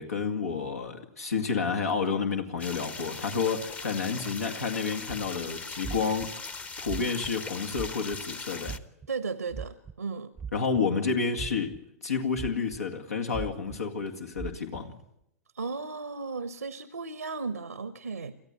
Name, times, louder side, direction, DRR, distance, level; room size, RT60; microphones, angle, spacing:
voice 1, 0.0-6.3 6.8-8.8 10.5-11.8 12.0-14.9, left 5 dB, 75° left, 4 dB, 2.2 m, -30 dB
sound 1, 2.6-8.8, left 4 dB, 15° left, 1.0 m, -40 dB
sound 2, 5.1-5.3 5.8-6.3 6.8-7.3 7.7-8.2 8.6-9.1 9.5-9.9 10.4-11.0 11.4-11.8 12.4-12.8 13.3-13.8 14.3-14.8, right 6 dB, 10° right, 0.8 m, -38 dB
voice 2, 9.1-10.3 15.5-18.3, right 4 dB, 85° right, 13 dB, 1.1 m, -35 dB
29.5 x 14.0 x 9.7 m, 0.83 s
figure-of-eight pair, 105°, 8 cm